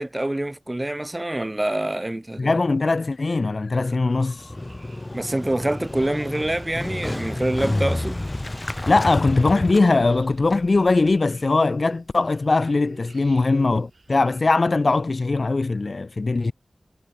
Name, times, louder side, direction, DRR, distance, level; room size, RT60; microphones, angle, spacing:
voice 1, 0.0-2.5 5.1-8.2, right 1 dB, 20° right, 0.3 m, -26 dB
voice 2, 2.4-4.4 8.9-16.5, left 3 dB, 55° left, 0.4 m, -20 dB
sound 1, 3.1-8.9, left 4 dB, 70° left, 4.7 m, -53 dB
sound 2, 4.1-14.4, right 3 dB, 60° right, 3.2 m, -52 dB
Motorcycle, 4.4-11.2, left 1 dB, 25° left, 1.2 m, -30 dB
wide cardioid pair, 65°, 0 cm